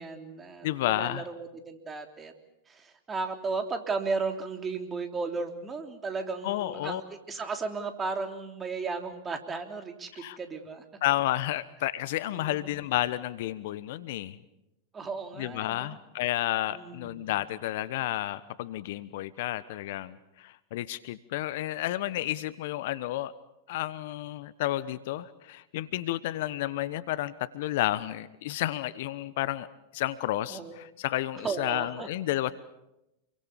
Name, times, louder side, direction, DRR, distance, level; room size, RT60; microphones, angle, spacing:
voice 1, 0.0-2.3 2.7-10.8 12.3-12.8 14.9-16.0 16.7-17.3 30.5-30.7 31.4-32.1, right 4 dB, 20° right, 6 dB, 3.4 m, -35 dB
voice 2, 0.6-1.3 6.4-7.0 10.2-10.4 11.0-14.4 15.4-23.3 23.7-29.7 29.9-32.5, left 15 dB, 60° left, 17 dB, 1.1 m, -31 dB
28.5 x 23.0 x 7.0 m, 0.88 s
figure-of-eight pair, 95°, 0 cm